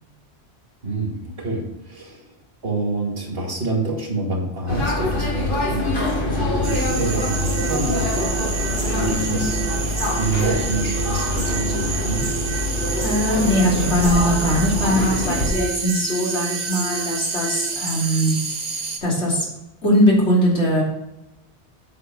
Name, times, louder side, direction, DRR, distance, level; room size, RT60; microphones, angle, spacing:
voice 1, 0.8-2.2 2.6-8.1 9.0-9.6 10.2-12.3, right 2 dB, 55° right, 0 dB, 2.4 m, -27 dB
sound 1, 4.7-15.5, left 1 dB, 50° left, 2.1 m, -24 dB
sound 2, 6.6-19.0, right 4 dB, 40° right, 1.0 m, -30 dB
sound 3, 6.7-17.7, right 11 dB, 85° right, 0.9 m, -33 dB
voice 2, 8.9-9.4 13.0-18.3 19.0-19.5 19.8-20.8, equal, 90° left, -3 dB, 3.2 m, -21 dB
8.3 x 5.9 x 6.1 m, 0.92 s
omnidirectional pair, 1.2 m